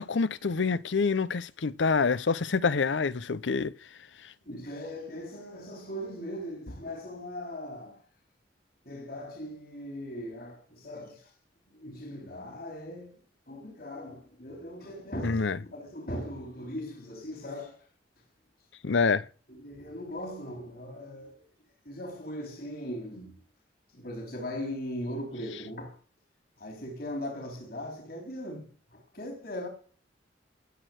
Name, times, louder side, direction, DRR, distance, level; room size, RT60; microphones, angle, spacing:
voice 1, 0.0-3.7 15.2-15.6 18.8-19.3, left 4 dB, 80° left, 0.7 m, -26 dB
voice 2, 4.5-8.0 8.9-11.3 11.7-13.2 13.5-15.4 15.7-17.8 19.5-21.4 21.8-23.3 23.9-26.0 26.6-29.7, left 1 dB, 55° left, 3.7 m, -39 dB
17.5 x 6.6 x 7.9 m
head